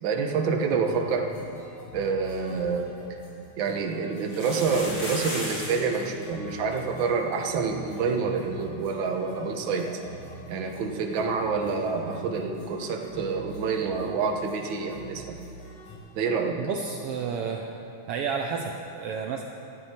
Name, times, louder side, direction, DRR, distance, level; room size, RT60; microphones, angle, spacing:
voice 1, 0.0-1.3 1.9-2.9 3.6-9.9 10.5-15.4 16.1-16.6, right 5 dB, 60° right, 2 dB, 1.3 m, -27 dB
sound 1, 0.7-16.0, right 1 dB, 70° left, 4.7 m, -45 dB
sound 2, 3.0-3.1 4.2-6.0 6.2-6.3 6.5-6.8 7.3-7.4 7.7-7.8 9.8-9.9, left 1 dB, 45° left, 4.7 m, -35 dB
voice 2, 16.6-17.7 18.1-19.4, right 6 dB, 80° right, 2 dB, 1.3 m, -31 dB
18.0 x 13.5 x 4.4 m, 2.7 s
omnidirectional pair, 3.6 m